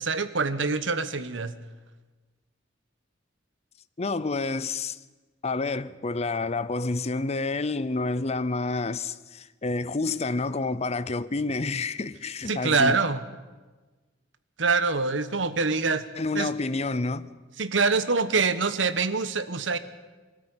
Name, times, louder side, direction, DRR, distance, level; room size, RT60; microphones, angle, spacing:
voice 1, 0.0-1.5 12.5-13.2 14.6-16.0 16.3-16.5 17.6-19.8, right 4 dB, 80° right, 1.2 m, -25 dB
voice 2, 4.0-5.0 5.4-13.0 16.2-17.3, left 3 dB, 35° left, 0.7 m, -29 dB
22.0 x 13.5 x 9.9 m
head